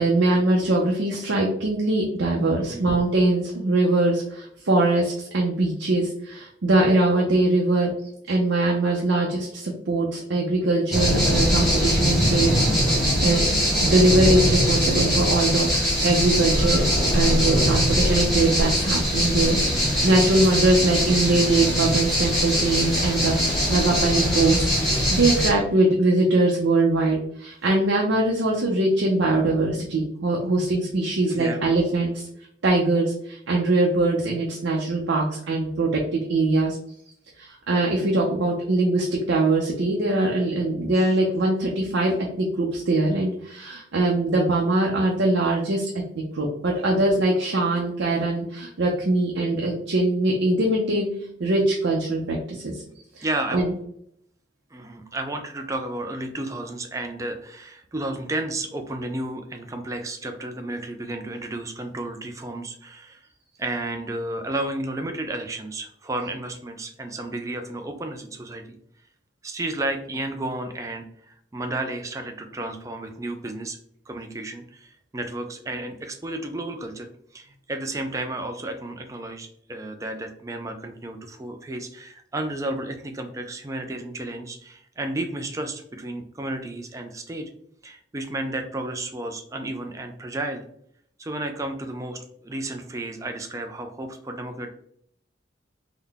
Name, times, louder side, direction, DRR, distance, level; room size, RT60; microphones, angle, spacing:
voice 1, 0.0-7.9 8.3-13.4 13.8-16.8 17.1-32.3 32.6-36.8 37.4-45.9 46.2-51.1 51.4-52.8 53.2-53.3 53.5-53.7, right 2 dB, 80° right, -1 dB, 0.6 m, -22 dB
voice 2, 2.6-2.9 17.5-17.9 31.2-31.6 41.0-41.1 53.2-53.6 54.7-63.3 63.6-68.6 69.4-71.1 71.5-73.8 74.1-87.5 87.8-90.6 91.2-94.7, right 2 dB, 15° right, 5 dB, 0.3 m, -32 dB
sound 1, 10.9-25.5, equal, ahead, 1.2 m, -22 dB
3.8 x 2.1 x 3.4 m, 0.69 s
head